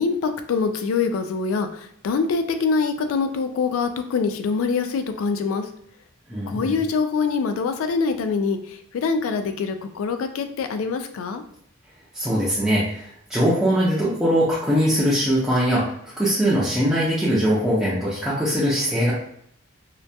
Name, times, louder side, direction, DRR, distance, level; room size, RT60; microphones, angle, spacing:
voice 1, 0.0-5.7 6.5-11.4, left 5 dB, 85° left, 8 dB, 0.3 m, -24 dB
voice 2, 6.3-6.8 12.1-19.1, equal, 5° right, -9 dB, 0.4 m, -21 dB
2.2 x 2.1 x 2.6 m, 0.68 s
head